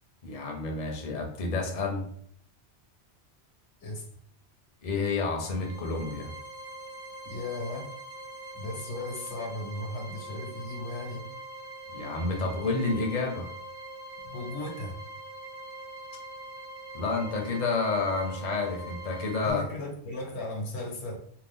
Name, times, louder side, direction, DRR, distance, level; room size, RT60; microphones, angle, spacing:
voice 1, 0.2-2.0 4.8-6.3 11.9-13.5 16.9-19.6, left 3 dB, 45° left, 1 dB, 0.7 m, -29 dB
sound 1, 5.3-19.5, right 2 dB, 40° right, 0.9 m, -43 dB
voice 2, 7.2-7.9 8.5-11.3 14.2-15.0 19.4-21.2, left 2 dB, 80° left, 1 dB, 1.1 m, -36 dB
2.7 x 2.3 x 3.5 m, 0.63 s
omnidirectional pair, 1.1 m